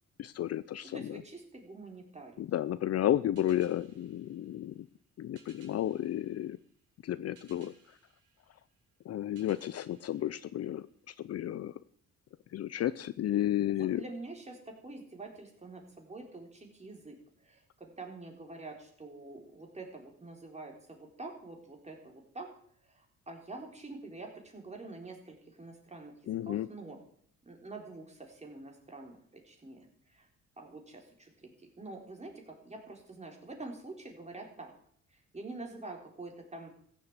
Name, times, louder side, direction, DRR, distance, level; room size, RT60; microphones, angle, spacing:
voice 1, 0.2-1.2 2.4-4.9 5.2-6.6 7.0-7.7 9.1-11.7 12.5-14.0 26.3-26.7, left 12 dB, 55° left, 15 dB, 0.6 m, -32 dB
voice 2, 0.9-2.4 13.7-17.2 17.4-22.6 22.8-27.0 27.4-30.3 30.6-34.7 35.1-36.7, right 2 dB, 20° right, 2 dB, 4.1 m, -46 dB
sound 1, 3.3-11.2, right 5 dB, 80° right, 4.1 m, -64 dB
15.0 x 7.8 x 8.1 m, 0.63 s
cardioid pair, 90°, 30 cm